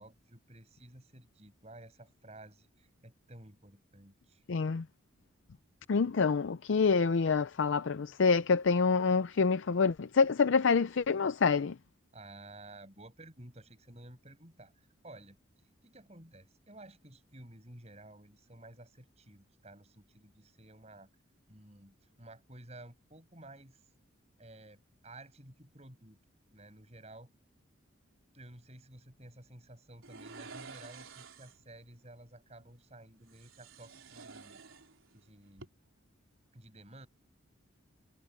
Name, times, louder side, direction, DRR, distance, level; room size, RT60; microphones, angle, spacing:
voice 1, 0.0-4.4 12.1-15.4 15.8-21.1 21.5-23.8 24.4-26.2 26.5-27.3 28.3-34.6 35.1-35.8 36.5-37.1, right 1 dB, 30° right, 7.0 m, -53 dB
voice 2, 4.5-4.8 5.9-11.8, left 5 dB, 65° left, 0.5 m, -27 dB
sound 1, 30.0-31.7 33.3-35.2 35.5-35.7, right 4 dB, 80° right, 3.9 m, -50 dB
head